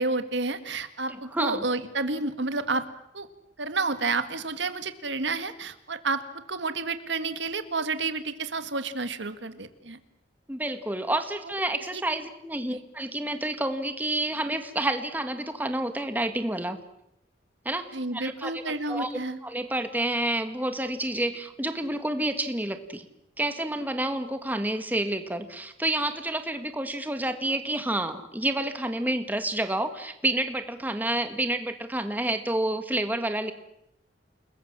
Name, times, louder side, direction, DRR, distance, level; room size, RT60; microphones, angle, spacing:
voice 1, 0.0-2.9 3.1-3.3 3.6-10.0 11.4-11.6 11.9-12.0 17.9-19.4, right 3 dB, 75° right, 11 dB, 1.8 m, -30 dB
voice 2, 1.1-1.6 10.5-16.8 17.6-19.1 19.4-23.0 23.4-33.5, right 1 dB, 10° right, 8 dB, 1.6 m, -29 dB
29.5 x 21.0 x 7.5 m, 0.77 s
head